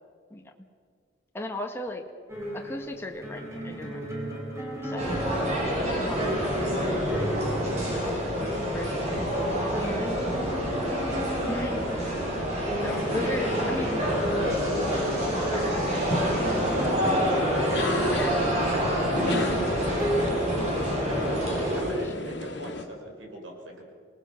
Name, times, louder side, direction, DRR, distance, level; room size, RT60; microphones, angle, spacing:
voice 1, 1.3-2.0 2.5-4.0 4.8-8.0 8.7-10.4 11.5-11.8 12.8-14.0 15.5-15.6 21.3-21.6, left 1 dB, 15° left, 2 dB, 1.5 m, -37 dB
sound 1, 2.3-21.4, right 1 dB, 15° right, 5.0 m, -35 dB
sound 2, 5.0-21.8, equal, 35° right, 7.9 m, -27 dB
voice 2, 10.8-11.6 13.6-13.7 14.9-17.9 18.3-18.9 19.3-20.6 21.6-23.9, equal, 85° right, 1 dB, 5.6 m, -39 dB
sound 3, 12.8-22.9, left 2 dB, 65° left, 2.1 m, -37 dB
27.0 x 18.5 x 6.5 m, 2.1 s
head